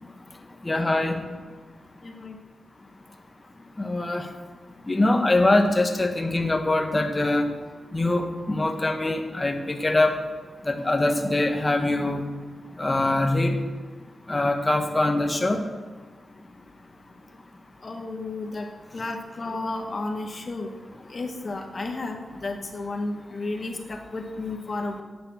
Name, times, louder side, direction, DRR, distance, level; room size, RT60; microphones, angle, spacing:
voice 1, 0.7-1.1 3.8-4.2 4.9-7.5 7.9-8.2 8.5-10.2 10.7-12.2 12.8-13.6 14.3-15.6, left 2 dB, 20° left, 4 dB, 1.3 m, -23 dB
voice 2, 2.0-2.4 17.8-18.7 18.9-20.7 21.1-25.0, left 2 dB, 35° left, 4 dB, 1.4 m, -32 dB
11.0 x 8.6 x 7.4 m, 1.4 s
wide cardioid pair, 135°, 0 cm